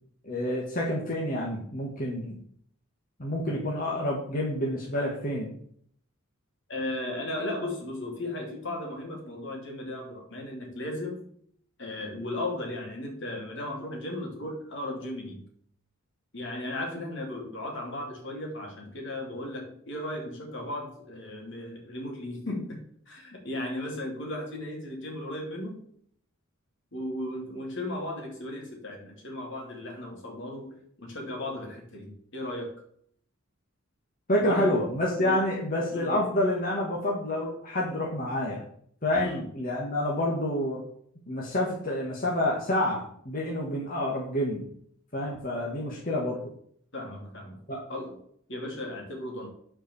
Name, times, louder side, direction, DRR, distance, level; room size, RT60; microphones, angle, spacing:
voice 1, 0.2-2.4 3.2-5.5 34.3-38.6 39.0-40.8 41.3-44.7 45.1-46.4 47.7-47.8, left 1 dB, 45° left, -3 dB, 1.9 m, -28 dB
voice 2, 6.7-11.2 11.8-15.5 16.3-22.8 23.1-25.8 26.9-32.7 34.4-34.7 35.2-35.4 35.9-36.2 39.1-39.4 46.9-47.6 47.9-48.2 48.5-49.5, left 1 dB, 60° left, 1 dB, 3.2 m, -36 dB
10.0 x 5.1 x 7.1 m, 0.64 s
head